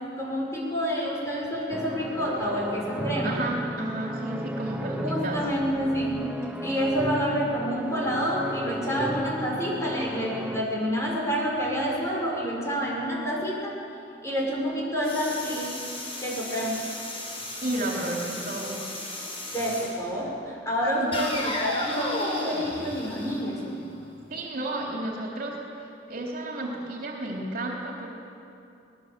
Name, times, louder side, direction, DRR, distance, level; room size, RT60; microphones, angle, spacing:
voice 1, 0.2-3.4 5.0-13.8 14.2-15.7 16.2-16.8 19.5-23.8, equal, 15° left, -4 dB, 6.7 m, -28 dB
sound 1, 1.7-10.6, equal, 5° right, 1.0 m, -34 dB
voice 2, 3.2-5.4 17.6-18.8 21.0-21.3 24.3-25.6 26.1-28.1, right 1 dB, 50° right, -2 dB, 3.6 m, -32 dB
sound 2, 15.0-20.0 21.1-24.0, left 1 dB, 35° left, 4.7 m, -34 dB
25.5 x 19.5 x 7.7 m, 2.6 s
head